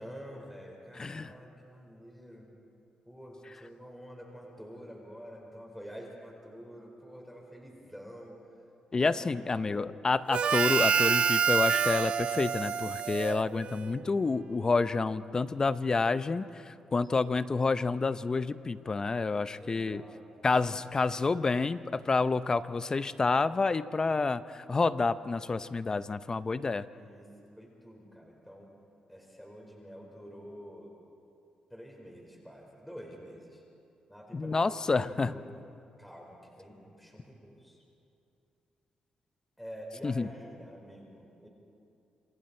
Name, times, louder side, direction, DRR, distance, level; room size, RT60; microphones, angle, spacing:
voice 1, 0.0-2.5 3.1-8.4 9.0-9.9 16.7-16.9 19.6-21.0 26.9-27.3 27.6-28.7 29.1-30.9 31.7-33.6 34.1-35.6 36.0-37.8 39.6-41.5, equal, ahead, -1 dB, 4.8 m, -48 dB
voice 2, 1.0-1.3 8.9-20.0 20.4-26.8 34.3-35.4 40.0-40.3, left 4 dB, 35° left, 14 dB, 0.7 m, -29 dB
Harmonica, 10.3-14.1, right 7 dB, 60° right, 0.4 m, -27 dB
27.0 x 27.0 x 4.4 m, 2.6 s
cardioid pair, 80°, 2 cm